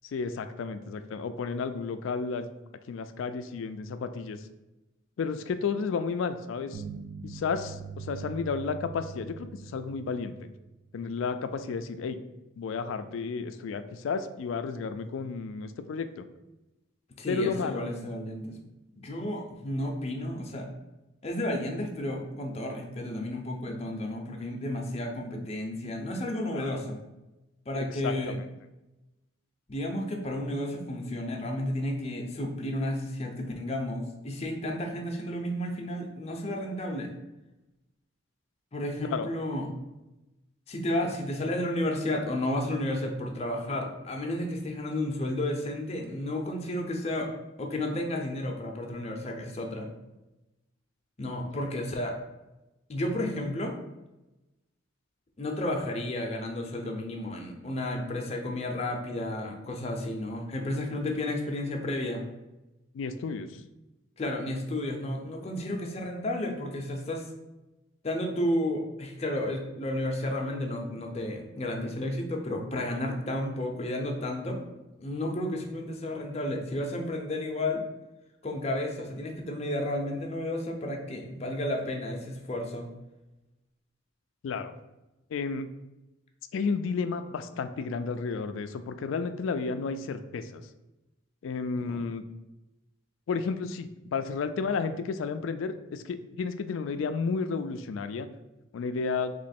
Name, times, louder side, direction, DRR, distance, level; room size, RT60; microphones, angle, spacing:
voice 1, 0.1-2.5 2.9-4.5 5.2-6.8 7.2-10.5 10.9-12.2 12.6-16.2 17.3-17.9 26.5-26.8 27.7-28.4 39.1-39.3 62.9-63.6 84.4-84.7 85.3-85.7 86.5-90.6 91.4-92.2 93.3-98.3 98.7-99.3, left 5 dB, 80° left, 10 dB, 0.3 m, -32 dB
sound 1, 6.7-10.9, right 5 dB, 65° right, 0.5 m, -42 dB
voice 2, 17.2-18.6 18.9-20.7 21.2-27.0 27.7-28.4 29.7-37.1 38.7-39.7 40.7-47.3 47.6-49.9 51.2-52.1 52.9-53.8 55.4-62.2 64.2-67.3 68.0-74.6 75.0-77.8 78.4-82.9 91.8-92.0, left 1 dB, 30° left, 1 dB, 0.6 m, -32 dB
3.1 x 3.0 x 4.2 m, 1.0 s
head